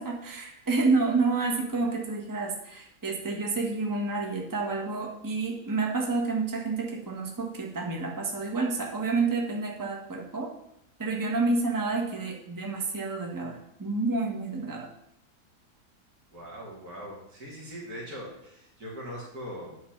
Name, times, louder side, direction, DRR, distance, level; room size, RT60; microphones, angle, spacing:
voice 1, 0.0-10.5 11.0-14.9, right 3 dB, 15° right, 1 dB, 1.0 m, -29 dB
voice 2, 16.3-19.8, equal, 85° right, -4 dB, 2.5 m, -41 dB
8.3 x 4.4 x 5.7 m, 0.81 s
omnidirectional pair, 1.6 m